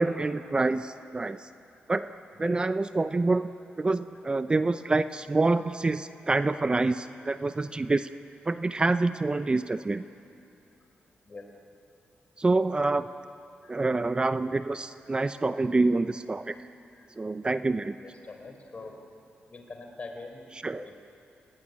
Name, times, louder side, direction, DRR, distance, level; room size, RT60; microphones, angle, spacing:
voice 1, 0.0-1.5 1.9-2.1 2.4-3.5 3.8-8.1 8.5-10.0 12.4-13.1 13.7-16.5 17.2-17.9 20.6-20.8, right 3 dB, 25° right, 11 dB, 0.6 m, -26 dB
voice 2, 18.0-18.9 19.5-20.5 20.8-21.0, left 3 dB, 35° left, 3 dB, 4.5 m, -43 dB
29.5 x 18.5 x 9.8 m, 2.8 s
cardioid pair, 95°, 4 cm